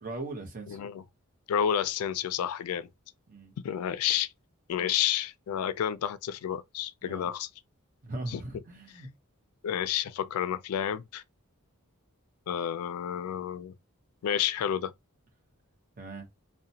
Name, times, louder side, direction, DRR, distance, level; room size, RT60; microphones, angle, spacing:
voice 1, 0.0-0.8 3.3-3.5 4.8-4.9 7.0-7.3 8.0-9.1 16.0-16.3, right 2 dB, 40° right, 0.8 m, -39 dB
voice 2, 0.7-1.0 1.5-2.9 3.6-4.3 4.7-7.5 8.3-8.4 9.6-11.2 12.5-13.7 14.2-14.9, left 9 dB, 90° left, 0.3 m, -30 dB
2.8 x 2.1 x 2.7 m
head